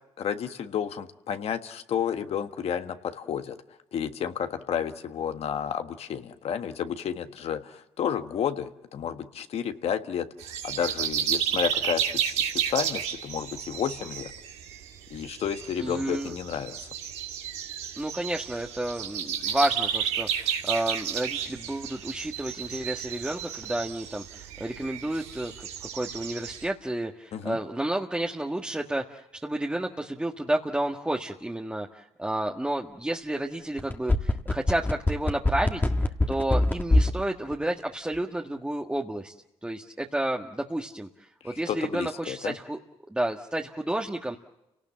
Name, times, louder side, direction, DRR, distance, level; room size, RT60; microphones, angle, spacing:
voice 1, 0.2-3.6 3.9-10.3 10.6-14.3 15.1-16.9 27.3-27.6 41.4-42.5, left 8 dB, 65° left, 8 dB, 1.6 m, -31 dB
sound 1, 10.4-26.7, right 8 dB, 90° right, 2.6 m, -32 dB
voice 2, 15.8-16.3 18.0-35.8 36.3-39.3 39.6-42.8 43.1-44.4, right 1 dB, 10° right, 0 dB, 1.6 m, -31 dB
sound 2, 33.8-37.2 37.5-37.6, left 2 dB, 15° left, 1.8 m, -22 dB
30.0 x 18.5 x 7.6 m, 0.93 s
cardioid pair, 80°, 11 cm